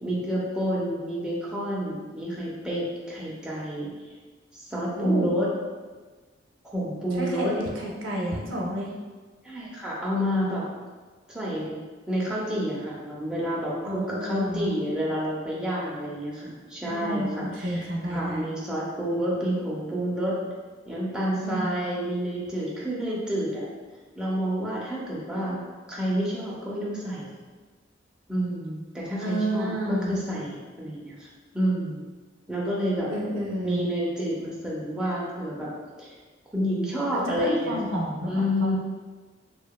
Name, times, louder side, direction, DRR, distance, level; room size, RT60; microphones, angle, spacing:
voice 1, 0.0-3.9 4.5-5.5 6.7-7.5 9.4-10.6 11.3-11.8 12.1-17.8 18.1-20.4 20.9-23.7 24.2-25.6 25.9-27.3 28.3-31.3 31.5-32.0 32.5-33.1 33.6-35.7 36.0-36.1 36.5-37.8 38.3-38.8, equal, 5° right, -6 dB, 0.5 m, -29 dB
voice 2, 5.0-5.3 7.1-8.9 13.9-14.7 16.8-18.5 21.4-21.7 29.2-30.3 33.1-33.9 37.1-38.8, right 1 dB, 90° right, -1 dB, 0.5 m, -30 dB
2.8 x 2.2 x 2.2 m, 1.4 s
head